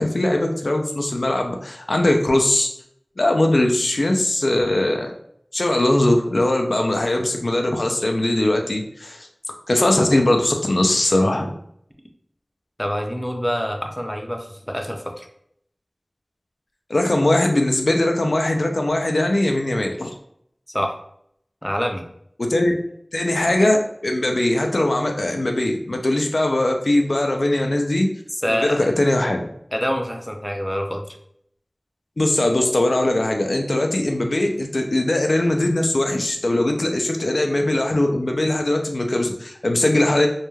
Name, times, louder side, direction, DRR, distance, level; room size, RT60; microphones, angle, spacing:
voice 1, 0.0-2.7 3.2-5.1 5.5-9.3 9.7-11.6 16.9-20.1 22.4-22.7 23.1-28.1 28.5-29.5 32.2-40.3, left 1 dB, 75° left, 3 dB, 0.3 m, -20 dB
voice 2, 12.8-15.3 20.7-20.9 21.6-22.0 28.4-28.8 29.7-31.0, equal, 5° left, 3 dB, 0.4 m, -26 dB
2.2 x 2.2 x 3.0 m, 0.70 s
wide cardioid pair, 40°, 0 cm